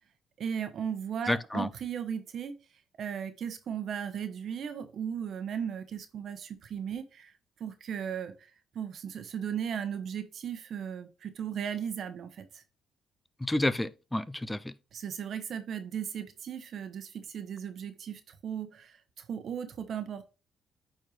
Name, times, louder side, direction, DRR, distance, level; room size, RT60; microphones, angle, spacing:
voice 1, 0.4-2.5 3.0-7.3 7.6-8.5 8.7-12.6 14.9-20.2, right 8 dB, 60° right, 1.1 m, -36 dB
voice 2, 1.3-1.7 13.4-14.7, left 1 dB, 10° left, 0.6 m, -30 dB
8.8 x 4.4 x 3.2 m
cardioid pair, 90°, 0 cm